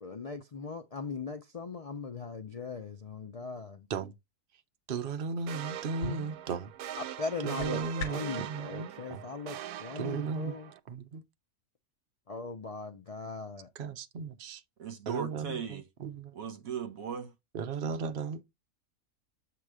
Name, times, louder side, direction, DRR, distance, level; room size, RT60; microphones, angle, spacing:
voice 1, 0.0-3.9 7.0-10.7 12.3-13.7, left 4 dB, 55° left, 0.4 m, -39 dB
voice 2, 4.9-6.7 7.4-9.2 9.9-10.6 10.9-11.2 13.7-14.6 15.1-16.3 17.5-18.4, right 5 dB, 50° right, 0.7 m, -36 dB
sound 1, 5.5-10.8, right 11 dB, 85° right, 1.1 m, -42 dB
sound 2, 5.9-8.4, left 3 dB, 75° left, 1.4 m, -42 dB
voice 3, 14.8-15.8 16.3-17.3, right 7 dB, 65° right, 1.6 m, -37 dB
7.6 x 3.0 x 4.8 m
omnidirectional pair, 1.6 m